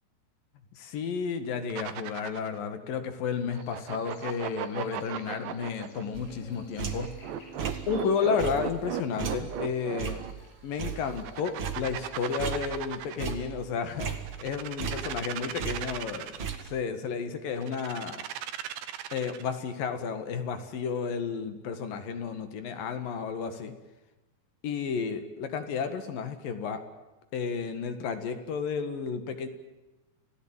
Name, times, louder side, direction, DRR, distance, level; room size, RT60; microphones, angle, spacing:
voice 1, 0.7-7.1 7.9-10.2 10.6-16.3 16.6-18.2 19.1-23.7 24.6-26.8 27.3-29.5, left 6 dB, 60° left, 9 dB, 3.2 m, -32 dB
sound 1, 1.7-2.6 3.5-6.0 6.9-10.3 11.1-13.4 14.2-16.7 17.6-19.5, right 11 dB, 80° right, 3.5 m, -37 dB
Buzz, 3.5-13.5, right 1 dB, 75° left, 9.4 m, -54 dB
sound 2, 6.1-7.2 7.6-8.0 8.4-11.3 11.6-12.9 13.2-15.3 15.6-16.5, right 7 dB, 40° right, 2.0 m, -36 dB
28.5 x 17.5 x 9.0 m, 1.1 s
omnidirectional pair, 5.1 m